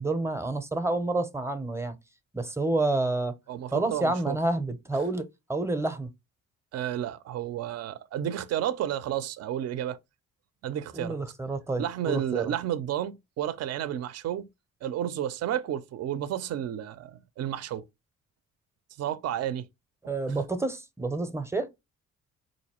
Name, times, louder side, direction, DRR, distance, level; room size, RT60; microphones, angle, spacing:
voice 1, 0.0-1.9 2.3-3.3 3.7-5.2 5.5-6.1 10.9-12.5 20.1-21.7, right 2 dB, 10° right, 0.6 m, -29 dB
voice 2, 3.5-4.4 6.7-10.0 10.6-11.2 11.8-14.5 14.8-17.8 19.0-19.7 20.3-20.4, right 11 dB, 55° right, 0.5 m, -31 dB
3.9 x 2.6 x 2.9 m
cardioid pair, 90°, 30 cm